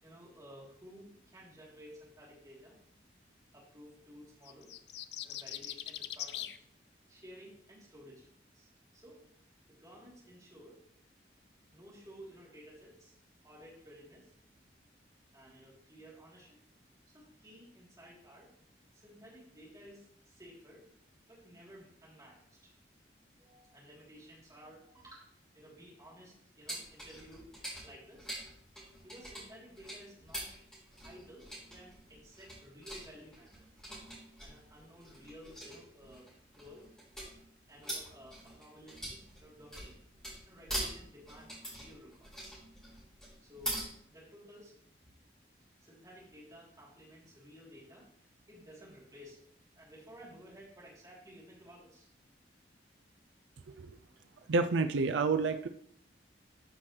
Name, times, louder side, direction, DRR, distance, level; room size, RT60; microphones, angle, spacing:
voice 1, 0.0-2.8 3.5-4.8 5.2-6.5 7.1-9.2 9.7-10.8 11.7-13.2 13.4-14.3 15.3-16.6 17.0-18.5 18.9-20.9 21.3-22.7 23.4-27.5 27.8-28.4 28.8-30.5 31.0-33.7 34.4-36.3 36.6-36.9 37.7-39.9 40.4-42.6 43.4-43.8 44.1-45.1 45.8-48.1 48.5-49.4 49.7-52.1, equal, 20° right, -6 dB, 3.2 m, -55 dB
sound 1, 4.5-6.6, left 12 dB, 65° left, 0.5 m, -41 dB
sound 2, 26.7-43.8, right 1 dB, 5° left, 3.7 m, -44 dB
voice 2, 54.5-55.7, right 4 dB, 85° right, 8 dB, 0.5 m, -29 dB
13.0 x 5.9 x 3.2 m, 0.68 s
head